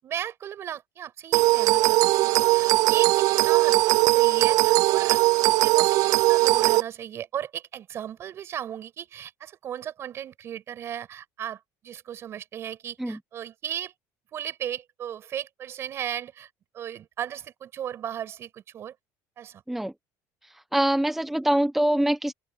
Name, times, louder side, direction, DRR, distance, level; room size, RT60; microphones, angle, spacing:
voice 1, 0.0-3.8 4.0-6.0 6.2-13.9 14.3-18.9 19.4-19.6, right 10 dB, 40° right, 5.8 m, -36 dB
sound 1, 1.3-6.8, right 19 dB, 60° right, 0.4 m, -20 dB
voice 2, 20.4-22.3, right 1 dB, 5° right, 0.8 m, -24 dB
open air
cardioid pair, 155°, 7 cm